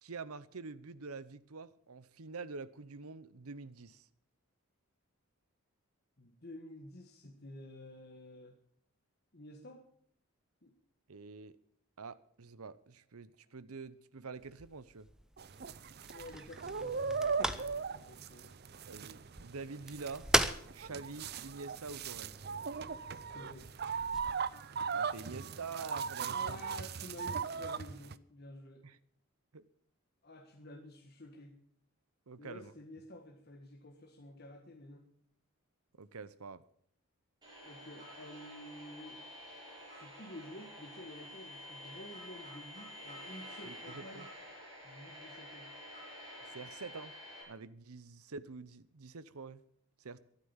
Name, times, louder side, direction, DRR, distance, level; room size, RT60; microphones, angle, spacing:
voice 1, 0.0-4.1 11.1-11.6 12.0-15.1 18.9-20.3 20.7-22.4 24.9-26.6 28.8-29.0 29.5-29.6 32.3-32.7 36.0-36.6 43.6-44.3 46.5-47.1 47.5-49.6 50.0-50.2, right 4 dB, 80° right, 0.8 m, -46 dB
voice 2, 6.2-8.5 9.3-9.8 10.6-10.7 16.1-18.5 23.3-23.8 26.3-28.9 30.2-31.6 32.4-35.1 37.6-39.2 39.9-44.3 44.8-45.7, left 1 dB, 45° left, 1.6 m, -51 dB
sound 1, 14.4-24.3, right 1 dB, 5° right, 0.6 m, -40 dB
sound 2, 15.4-28.2, right 6 dB, 45° right, 0.5 m, -39 dB
sound 3, 37.4-47.4, equal, 20° right, 7.6 m, -50 dB
13.0 x 11.5 x 7.2 m
head